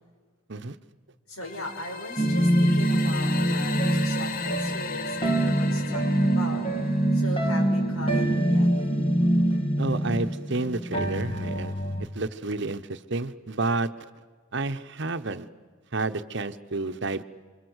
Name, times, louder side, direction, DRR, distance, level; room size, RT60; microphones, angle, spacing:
voice 1, 1.3-6.6 7.1-8.7, left 1 dB, 90° left, 3 dB, 6.1 m, -38 dB
sound 1, 1.4-7.4, left 6 dB, 40° left, 0.9 m, -36 dB
sound 2, 2.2-12.1, right 1 dB, 25° left, 1.5 m, -24 dB
voice 2, 9.8-11.7 12.1-13.9 14.5-15.5 15.9-17.2, right 3 dB, 55° right, 10 dB, 1.0 m, -30 dB
27.5 x 26.0 x 8.1 m, 1.5 s
head